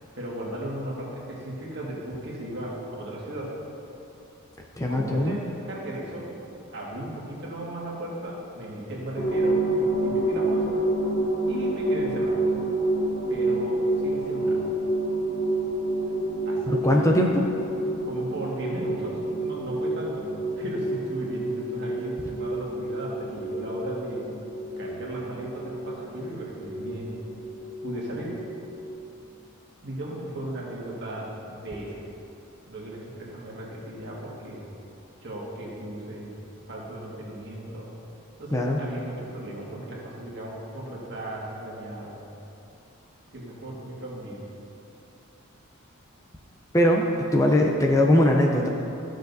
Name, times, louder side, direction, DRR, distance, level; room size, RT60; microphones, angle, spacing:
voice 1, 0.1-3.5 4.9-5.4 5.7-6.3 6.7-10.8 11.5-12.4 13.3-14.6 16.4-17.1 18.0-20.3 20.6-24.2 24.8-27.1 27.8-28.3 29.8-32.0 32.7-34.7 35.2-36.3 36.7-37.9 38.4-42.2 43.3-44.4, right 1 dB, 55° right, -4 dB, 1.8 m, -36 dB
voice 2, 4.8-5.4 16.7-17.4 38.5-38.8 46.7-47.0 47.3-48.7, left 1 dB, 15° left, 0 dB, 0.5 m, -20 dB
sound 1, 9.2-28.9, right 1 dB, 40° left, 1.6 m, -28 dB
14.0 x 6.5 x 2.7 m, 2.7 s
head